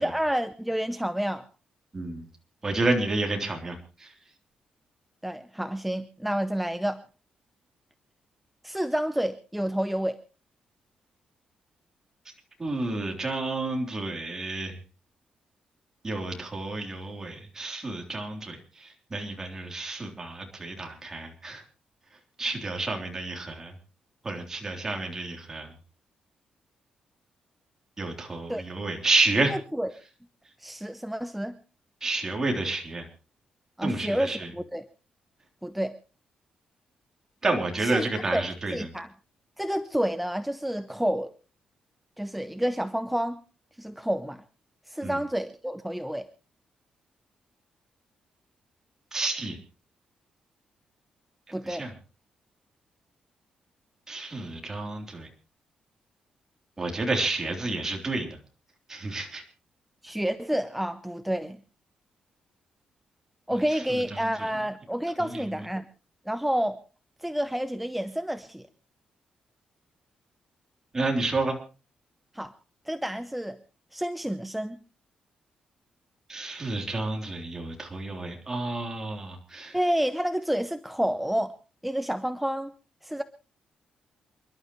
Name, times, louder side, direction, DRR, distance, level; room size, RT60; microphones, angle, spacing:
voice 1, 0.0-1.5 5.2-7.0 8.6-10.2 28.5-28.6 29.5-29.9 30.6-31.6 33.8-34.8 35.6-36.0 37.8-38.1 38.3-38.4 38.7-39.1 39.6-41.3 42.2-43.4 43.8-44.4 44.9-46.3 51.5-51.9 60.0-61.6 63.5-65.8 66.3-66.8 67.2-68.7 72.3-72.5 72.9-73.6 73.9-74.8 79.7-81.5 81.8-82.7 83.0-83.2, equal, 5° right, 9 dB, 0.7 m, -29 dB
voice 2, 1.9-2.2 2.6-4.1 12.6-14.8 16.0-21.6 22.4-23.7 24.2-25.7 28.0-29.5 32.0-33.1 33.8-34.5 37.4-38.9 45.0-45.2 49.1-49.6 51.6-51.9 54.1-55.3 56.8-58.3 58.9-59.4 63.5-64.5 65.2-65.5 70.9-71.6 76.3-79.8, right 2 dB, 20° right, 2 dB, 3.5 m, -30 dB
28.5 x 11.5 x 3.1 m, 0.34 s
cardioid pair, 150°, 2 cm